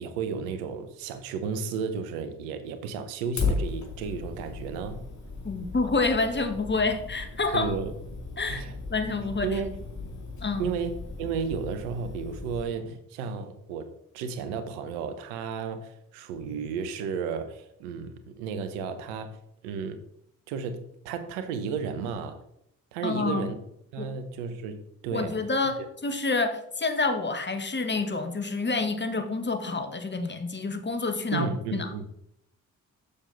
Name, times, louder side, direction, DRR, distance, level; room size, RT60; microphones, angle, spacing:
voice 1, 0.0-5.0 7.5-7.9 8.5-8.7 9.4-9.8 10.6-20.0 20.5-22.4 22.9-23.6 23.9-25.4 25.8-25.9 31.3-32.1, right 5 dB, 80° right, 0.8 m, -33 dB
Fire, 3.4-12.6, left 4 dB, 45° left, 1.9 m, -36 dB
voice 2, 5.4-7.7 8.4-8.6 8.9-9.5 10.4-10.6 23.0-23.5 24.0-24.1 25.1-31.9, left 3 dB, 25° left, 1.4 m, -28 dB
7.2 x 6.8 x 3.9 m
hypercardioid pair, 40°, 40 cm